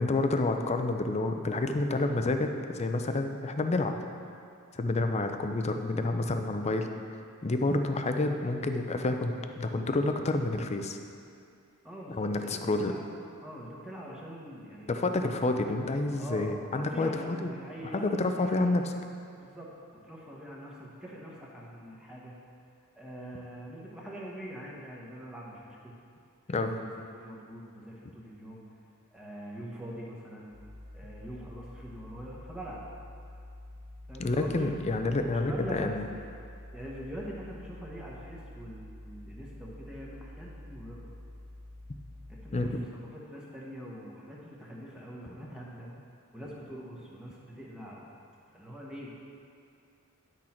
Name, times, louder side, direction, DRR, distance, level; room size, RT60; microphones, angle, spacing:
voice 1, 0.0-3.9 4.7-6.9 7.4-11.0 12.1-12.9 14.9-17.5 17.9-18.8 26.5-26.7 34.2-36.0 42.5-42.7, left 2 dB, 30° left, 6 dB, 0.5 m, -29 dB
voice 2, 11.8-13.1 13.4-15.1 16.2-18.8 19.3-19.7 20.0-22.3 22.9-26.0 26.5-28.6 29.1-30.5 30.9-32.8 34.1-36.2 36.7-41.1 42.3-42.8 43.1-45.9 46.3-48.1 48.5-49.1, equal, 5° right, -5 dB, 1.1 m, -43 dB
sound 1, 30.5-42.7, left 1 dB, 75° right, 1.7 m, -48 dB
10.0 x 6.3 x 4.4 m, 2.4 s
head